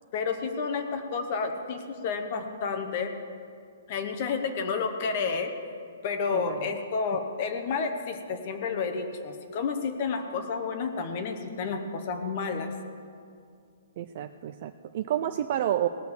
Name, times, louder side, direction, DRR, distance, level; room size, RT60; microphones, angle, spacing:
voice 1, 0.1-3.1 3.9-5.5 6.0-12.7, left 5 dB, 35° left, 6 dB, 1.0 m, -30 dB
voice 2, 6.3-6.7 14.0-15.9, right 11 dB, 35° right, 9 dB, 0.4 m, -30 dB
18.5 x 6.3 x 7.1 m, 2.3 s
hypercardioid pair, 170°, 0 cm